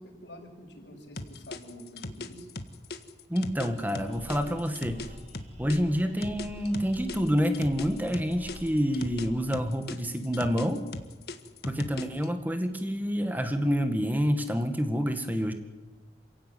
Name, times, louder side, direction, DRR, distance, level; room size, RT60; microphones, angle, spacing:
voice 1, 0.0-2.5, equal, 85° left, 0 dB, 7.4 m, -47 dB
sound 1, 1.2-5.8 6.2-9.3 9.5-12.3, left 2 dB, 60° left, 1.8 m, -38 dB
voice 2, 3.3-5.0 5.6-10.8 11.6-15.5, equal, 10° right, 7 dB, 1.9 m, -28 dB
sound 2, 4.0-9.3, equal, 40° right, 5.6 m, -48 dB
28.0 x 16.5 x 9.4 m, 1.2 s
head